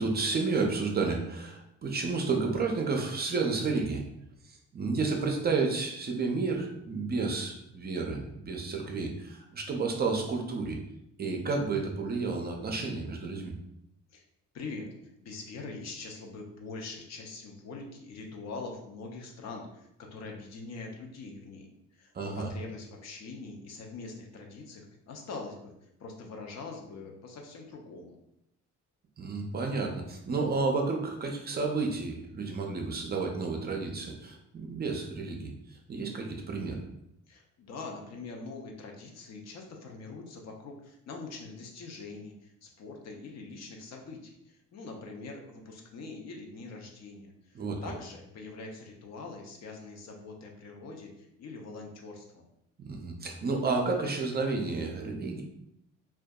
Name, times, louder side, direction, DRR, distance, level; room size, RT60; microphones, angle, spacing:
voice 1, 0.0-4.0 4.4-10.8 11.2-13.5 22.1-22.5 29.2-35.5 35.9-36.8 47.5-47.8 52.9-55.4, right 4 dB, 35° right, 2 dB, 0.4 m, -31 dB
voice 2, 14.5-14.9 15.2-25.7 26.0-28.2 37.3-52.5, left 3 dB, 60° left, 1 dB, 0.6 m, -43 dB
2.6 x 2.2 x 2.2 m, 0.80 s
cardioid pair, 90°, 30 cm